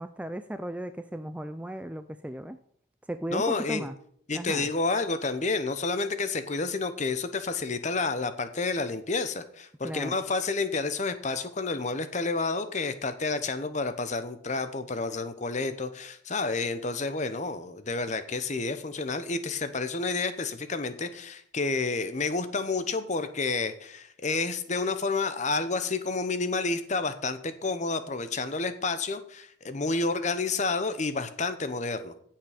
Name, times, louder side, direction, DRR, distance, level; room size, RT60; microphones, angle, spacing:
voice 1, 0.0-2.6 3.1-4.0 4.3-4.7 9.8-10.1, right 1 dB, 5° right, 10 dB, 0.3 m, -36 dB
voice 2, 3.3-3.9 4.3-32.1, left 3 dB, 35° left, 11 dB, 0.8 m, -30 dB
16.5 x 5.7 x 5.0 m, 0.66 s
head